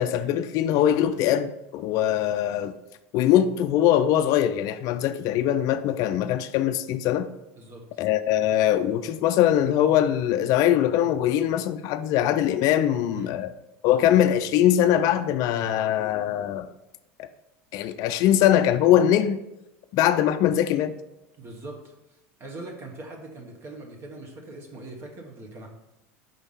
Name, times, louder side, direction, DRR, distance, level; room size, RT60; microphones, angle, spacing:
voice 1, 0.0-2.8 3.1-7.3 8.0-13.5 13.8-16.7 17.2-17.3 17.7-19.4 19.9-20.9, left 11 dB, 55° left, 0.4 m, -22 dB
voice 2, 7.6-8.0 13.1-13.4 21.4-25.7, right 2 dB, 35° right, 1.1 m, -41 dB
5.2 x 3.4 x 5.5 m
supercardioid pair, 100°, 8 cm